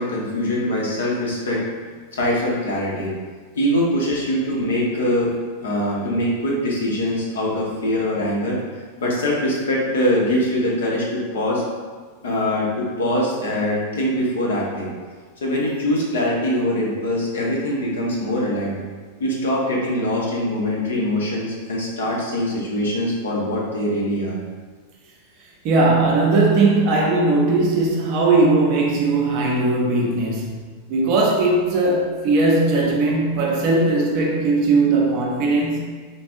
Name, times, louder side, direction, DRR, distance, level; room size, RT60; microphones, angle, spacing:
voice 1, 0.0-1.6 2.1-3.1 3.5-8.6 9.0-11.6 12.2-14.9 15.4-18.8 19.2-24.4, left 1 dB, 65° left, -4 dB, 0.8 m, -23 dB
voice 2, 25.6-30.6 30.9-35.8, right 3 dB, 45° right, -1 dB, 0.6 m, -18 dB
3.9 x 2.5 x 2.4 m, 1.5 s
figure-of-eight pair, 90°, 0 cm